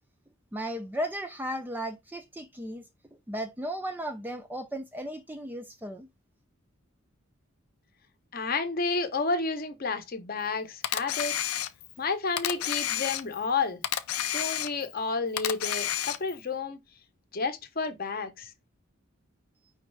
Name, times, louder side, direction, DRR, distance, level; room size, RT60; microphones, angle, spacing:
voice 1, 0.5-2.8 3.3-6.1, equal, 10° right, 0.3 m, -35 dB
voice 2, 8.3-11.3 12.0-13.8 14.2-16.8 17.3-18.5, left 4 dB, 45° left, 0.7 m, -31 dB
Camera, 10.8-12.0 12.4-13.5 13.8-15.0 15.4-16.4, left 11 dB, 90° left, 0.5 m, -30 dB
5.1 x 3.1 x 3.2 m
head